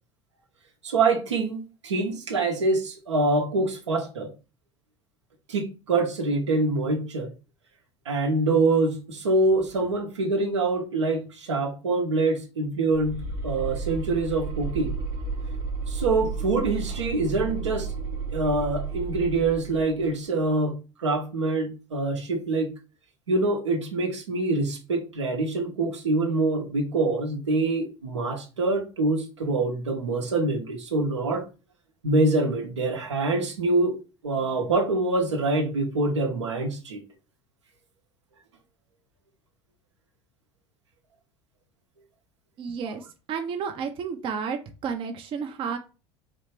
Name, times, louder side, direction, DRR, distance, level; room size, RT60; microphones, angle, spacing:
voice 1, 0.8-4.3 5.5-7.3 8.1-14.9 15.9-17.9 18.3-22.7 23.3-31.4 32.0-37.0, right 2 dB, 75° right, 0.9 m, -25 dB
sound 1, 12.9-20.2, right 4 dB, 50° right, 0.9 m, -32 dB
voice 2, 42.6-45.8, right 6 dB, 35° right, 0.6 m, -32 dB
4.1 x 3.2 x 3.1 m
figure-of-eight pair, 70°, 15 cm